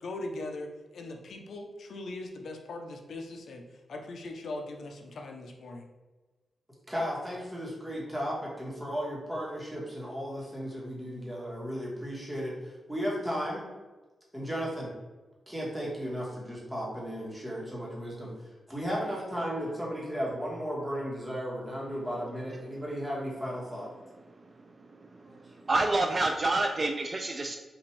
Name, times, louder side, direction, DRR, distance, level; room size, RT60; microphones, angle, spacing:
voice 1, 0.0-5.9, left 2 dB, 70° left, 3 dB, 0.6 m, -40 dB
voice 2, 6.9-12.6 12.9-13.7 14.3-14.9 15.5-18.3 18.7-23.9 25.2-25.4, equal, 5° right, -4 dB, 1.3 m, -35 dB
voice 3, 25.7-27.6, right 2 dB, 30° right, 3 dB, 0.3 m, -27 dB
5.7 x 2.5 x 3.2 m, 1.2 s
wide cardioid pair, 125°, 0 cm